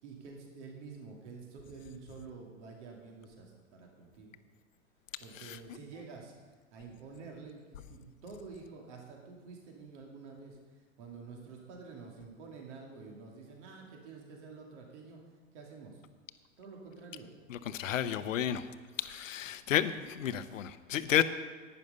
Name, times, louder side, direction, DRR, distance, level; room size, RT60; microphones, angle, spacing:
voice 1, 0.0-4.4 5.2-6.3 6.7-15.2 15.5-16.0 16.6-17.3, right 4 dB, 65° right, 0 dB, 2.6 m, -49 dB
voice 2, 17.5-18.7 19.0-21.2, left 10 dB, 80° left, 13 dB, 0.8 m, -31 dB
11.0 x 9.2 x 5.4 m, 1.4 s
hypercardioid pair, 105°, 38 cm